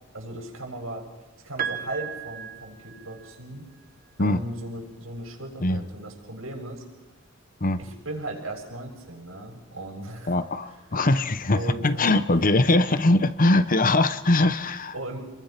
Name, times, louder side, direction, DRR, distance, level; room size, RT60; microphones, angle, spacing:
voice 1, 0.1-1.1 1.4-3.7 4.2-6.8 7.8-10.4 11.5-12.1 14.9-15.2, right 1 dB, 85° right, 1 dB, 7.1 m, -37 dB
Piano, 1.6-3.6 4.9-5.0, right 8 dB, 45° right, 1.3 m, -35 dB
voice 2, 10.3-14.9, left 2 dB, 45° left, 12 dB, 1.0 m, -21 dB
30.0 x 22.5 x 5.9 m, 1.2 s
head